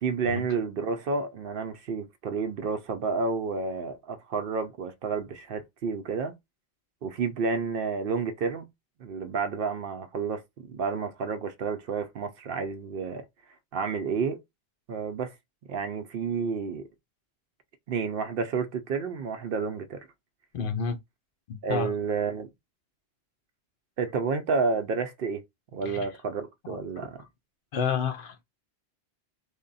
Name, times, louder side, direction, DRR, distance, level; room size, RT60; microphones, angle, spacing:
voice 1, 0.0-6.4 7.0-8.7 9.0-10.4 10.7-13.2 13.7-14.4 14.9-15.3 15.7-16.9 17.9-20.1 21.6-22.5 24.0-25.4 25.7-27.2, right 5 dB, 65° right, 0.7 m, -30 dB
voice 2, 20.5-21.0 21.5-21.9 25.8-26.1 26.6-27.3 27.7-28.4, left 6 dB, 60° left, 0.7 m, -31 dB
3.4 x 2.2 x 3.9 m
omnidirectional pair, 1.1 m